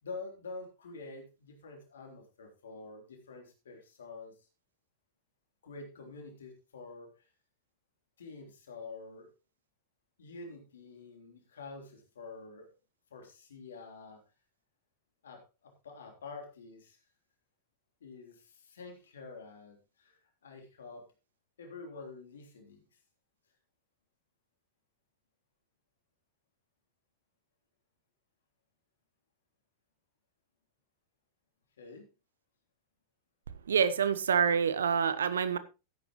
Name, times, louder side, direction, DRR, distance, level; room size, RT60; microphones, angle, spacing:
voice 1, 0.0-4.5 5.6-7.3 8.2-9.3 10.2-12.7 13.1-14.2 15.2-17.0 18.0-21.1 21.6-23.0 31.8-32.1, left 3 dB, 65° left, 2 dB, 3.5 m, -47 dB
voice 2, 33.7-35.6, right 7 dB, 65° right, 14 dB, 1.0 m, -27 dB
13.5 x 10.0 x 3.0 m, 0.29 s
figure-of-eight pair, 90°, 0 cm